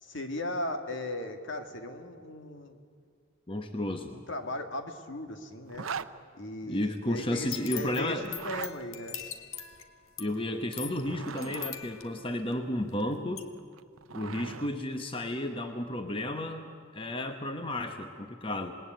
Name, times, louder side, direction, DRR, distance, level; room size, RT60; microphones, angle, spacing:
voice 1, 0.0-2.8 4.1-5.9 6.4-9.2, left 1 dB, 60° left, 6 dB, 2.0 m, -37 dB
voice 2, 3.5-4.1 6.7-8.3 10.2-13.5 14.1-18.8, left 1 dB, 25° left, 6 dB, 1.0 m, -33 dB
Zipper (clothing), 5.7-6.1 8.2-8.7 10.9-11.7 13.6-14.7, right 6 dB, 80° right, 0.7 m, -39 dB
sound 1, 7.3-13.0 13.4-13.5, left 9 dB, 80° left, 1.8 m, -42 dB
27.5 x 20.0 x 9.1 m, 2.1 s
head